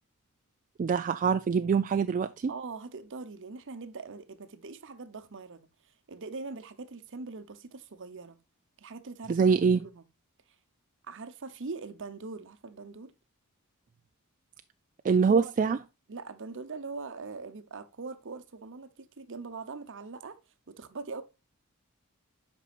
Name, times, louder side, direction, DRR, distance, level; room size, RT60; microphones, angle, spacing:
voice 1, 0.8-2.5 9.3-9.8 15.0-15.8, right 5 dB, 35° right, 0.3 m, -24 dB
voice 2, 2.5-5.7 6.1-8.4 8.8-10.0 11.0-13.1 15.1-15.5 16.1-20.4 20.7-21.2, right 4 dB, 60° right, 0.8 m, -42 dB
8.2 x 5.4 x 2.4 m
head